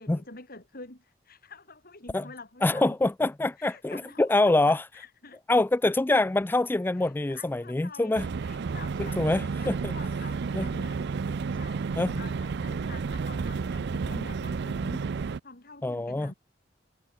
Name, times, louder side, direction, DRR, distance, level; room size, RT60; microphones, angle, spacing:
voice 1, 0.0-3.0 3.6-5.4 6.9-9.2 9.5-11.0 11.5-11.8 12.2-16.3, left 3 dB, 50° left, 5.5 m, -47 dB
voice 2, 2.6-4.9 5.5-8.3 9.0-9.9 10.5-10.6 12.0-12.1 15.8-16.3, left 2 dB, 10° left, 0.3 m, -25 dB
sound 1, 8.1-15.4, right 5 dB, 60° right, 0.4 m, -31 dB
head